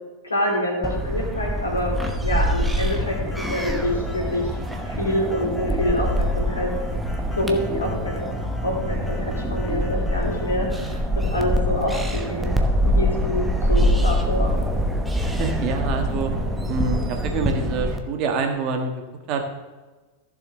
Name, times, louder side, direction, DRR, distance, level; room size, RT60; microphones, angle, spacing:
voice 1, 0.2-1.9 2.2-4.5 4.8-6.7 7.3-8.3 8.6-12.5 12.8-14.6, left 1 dB, 75° left, -1 dB, 3.1 m, -26 dB
sound 1, 0.8-18.0, equal, 5° right, 1.1 m, -24 dB
sound 2, 2.5-10.6, left 1 dB, 10° left, 1.4 m, -38 dB
voice 2, 15.4-16.3 16.7-19.0 19.3-19.4, right 4 dB, 40° right, 4 dB, 1.6 m, -26 dB
15.0 x 7.0 x 3.8 m, 1.2 s
figure-of-eight pair, 90°, 0 cm